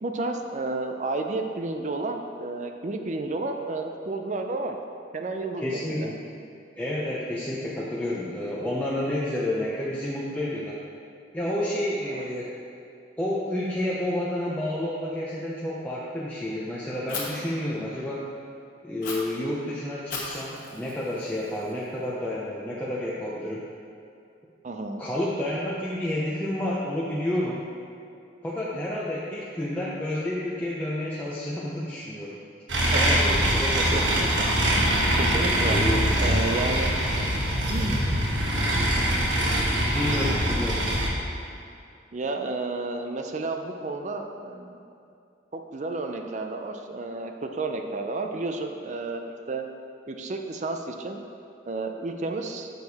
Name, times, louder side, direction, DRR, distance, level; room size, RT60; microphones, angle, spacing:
voice 1, 0.0-4.8 5.1-6.1 12.1-12.3 24.6-25.0 32.9-33.2 33.7-34.5 35.2-35.8 36.2-36.9 37.7-38.1 39.0-39.2 42.1-44.8 45.5-49.7 50.1-51.2 51.7-52.7, right 2 dB, 40° right, 4 dB, 0.4 m, -31 dB
voice 2, 5.6-6.2 6.8-10.8 11.3-12.5 13.2-18.3 18.8-23.6 25.0-27.7 28.4-32.4 32.9-34.1 35.7-36.2 39.8-40.9, left 1 dB, 10° left, -7 dB, 0.5 m, -30 dB
Fire, 17.1-17.2 19.0-19.1 20.1-22.1, left 4 dB, 45° left, 1.3 m, -37 dB
sound 1, 32.7-41.1, equal, 75° right, 1.2 m, -23 dB
6.8 x 6.2 x 4.2 m, 2.5 s
head